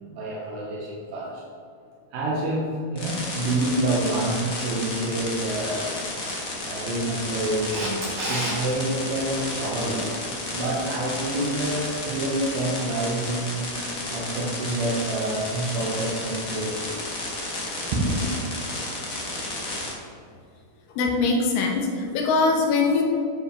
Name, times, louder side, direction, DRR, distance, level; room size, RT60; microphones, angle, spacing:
voice 1, 0.1-1.4 2.1-5.9 6.5-10.2 10.5-13.6 14.1-17.0 17.9-18.3, right 1 dB, 90° right, -4 dB, 2.9 m, -27 dB
sound 1, 3.0-19.9, left 2 dB, 40° left, 1.2 m, -32 dB
Camera, 7.7-8.6 15.3-15.4, right 1 dB, 55° right, 3.1 m, -29 dB
voice 2, 21.0-23.0, left 4 dB, 90° left, 1 dB, 2.8 m, -22 dB
10.0 x 6.8 x 3.5 m, 2.3 s
omnidirectional pair, 3.8 m